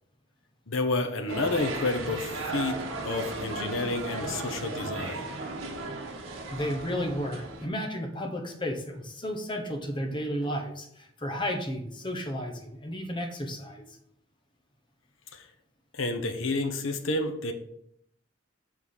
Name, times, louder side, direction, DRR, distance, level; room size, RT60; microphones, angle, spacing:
voice 1, 0.7-5.3 15.3-15.5 15.9-17.5, left 2 dB, 75° left, 6 dB, 0.9 m, -30 dB
sound 1, 1.3-7.7, right 3 dB, 85° right, 1.4 m, -36 dB
voice 2, 6.5-14.0, equal, 25° left, 3 dB, 1.1 m, -33 dB
7.6 x 3.7 x 6.4 m, 0.72 s
head